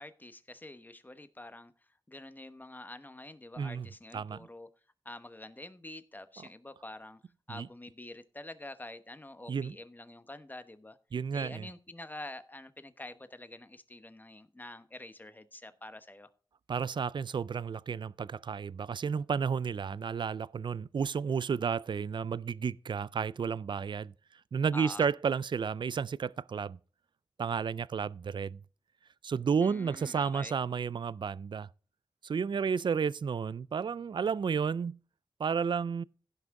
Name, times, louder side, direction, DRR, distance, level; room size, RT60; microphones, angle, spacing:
voice 1, 0.0-1.7 2.1-4.7 5.0-7.2 7.5-11.0 11.3-16.3 24.7-25.1 29.6-30.5, left 2 dB, 20° left, 1.0 m, -47 dB
voice 2, 3.6-3.9 4.1-4.5 7.5-7.7 9.5-9.8 11.1-11.7 16.7-24.1 24.5-26.8 27.4-28.6 29.2-31.7 32.2-35.0 35.4-36.0, right 6 dB, 65° right, 0.4 m, -32 dB
16.0 x 6.0 x 3.7 m
wide cardioid pair, 100°, 9 cm